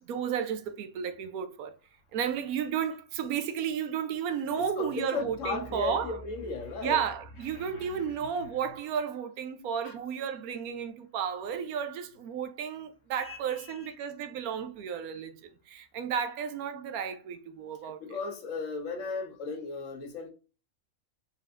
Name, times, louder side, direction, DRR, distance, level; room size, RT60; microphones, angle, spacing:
voice 1, 0.1-1.8 2.1-6.2 6.8-15.4 15.7-18.2, right 7 dB, 85° right, 1.1 m, -33 dB
voice 2, 4.6-7.0 7.5-8.2 9.8-9.9 13.2-13.9 17.8-20.3, left 4 dB, 65° left, 1.2 m, -36 dB
4.2 x 3.9 x 2.4 m
omnidirectional pair, 1.5 m